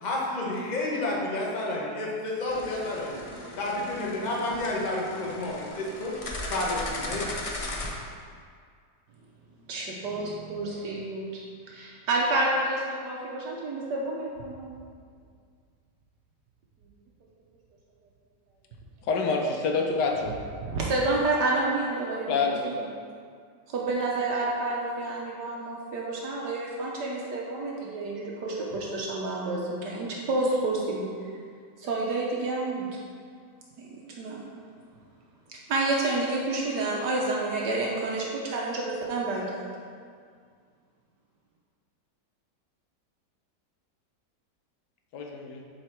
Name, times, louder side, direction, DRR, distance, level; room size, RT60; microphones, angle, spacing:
voice 1, 0.0-3.2 3.6-6.2 6.5-7.3, left 2 dB, 30° left, 1.0 m, -30 dB
sound 1, 2.5-8.0, left 1 dB, 55° left, 0.4 m, -37 dB
voice 2, 9.7-14.7 19.6-19.7 20.6-22.7 23.7-31.1 31.8-32.9 33.8-34.4 35.5-39.7, right 2 dB, 75° right, 1.4 m, -29 dB
voice 3, 19.1-20.3 22.3-23.0 45.1-45.6, left 4 dB, 75° left, 1.4 m, -27 dB
7.8 x 4.0 x 4.4 m
omnidirectional pair, 1.8 m